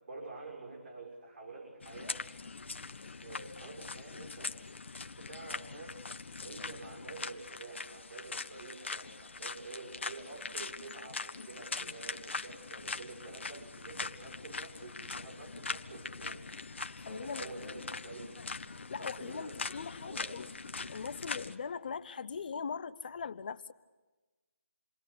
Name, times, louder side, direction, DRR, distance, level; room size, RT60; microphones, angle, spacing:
voice 1, 0.1-2.2 3.2-4.8 5.2-6.1 6.4-16.4 17.1-18.4 19.0-19.6 20.0-20.4, right 3 dB, 55° right, -2 dB, 6.2 m, -48 dB
sound 1, 1.8-21.6, left 4 dB, 60° left, 1.4 m, -42 dB
voice 2, 17.0-17.6 17.9-18.1 18.9-20.5 20.9-23.7, left 6 dB, 40° left, 13 dB, 0.9 m, -41 dB
28.5 x 23.0 x 8.5 m, 1.2 s
figure-of-eight pair, 150°, 7 cm